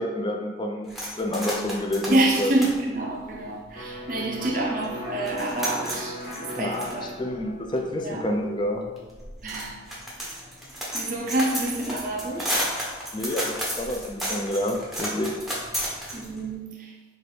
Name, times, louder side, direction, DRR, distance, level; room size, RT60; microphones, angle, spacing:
voice 1, 0.0-2.5 6.6-8.8 13.1-15.3, left 1 dB, 25° left, 2 dB, 0.4 m, -29 dB
sound 1, 0.9-4.1 4.5-4.6 4.8-16.5, equal, ahead, 0.7 m, -33 dB
voice 2, 2.1-7.2 8.0-8.2 9.4-9.7 10.9-12.6 16.1-16.9, right 2 dB, 50° right, -2 dB, 0.6 m, -27 dB
Electric guitar, 3.7-11.4, equal, 45° left, 1.2 m, -40 dB
4.6 x 2.5 x 3.3 m, 1.2 s
head